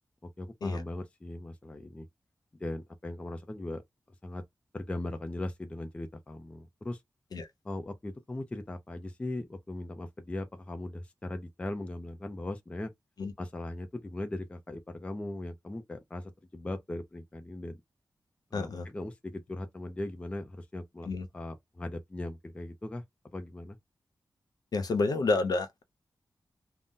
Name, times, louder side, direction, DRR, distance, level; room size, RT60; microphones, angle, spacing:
voice 1, 0.2-2.1 2.6-3.8 4.2-4.4 4.7-7.0 7.6-12.9 13.4-17.8 18.5-23.0 23.3-23.8, left 2 dB, 15° left, 0.4 m, -39 dB
voice 2, 18.5-18.9 21.0-21.3 24.7-25.8, left 3 dB, 65° left, 0.6 m, -29 dB
2.6 x 2.0 x 3.6 m
wide cardioid pair, 180°, 7 cm